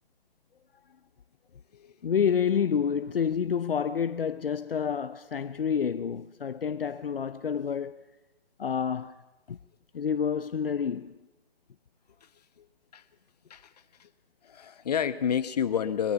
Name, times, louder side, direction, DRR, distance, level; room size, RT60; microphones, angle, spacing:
voice 1, 2.0-8.0 8.6-9.2 9.5-9.6 9.9-11.1, left 7 dB, 65° left, 0.7 m, -28 dB
voice 2, 14.4-16.1, left 8 dB, 40° left, 1.1 m, -30 dB
22.0 x 22.0 x 5.7 m
figure-of-eight pair, 150°, 31 cm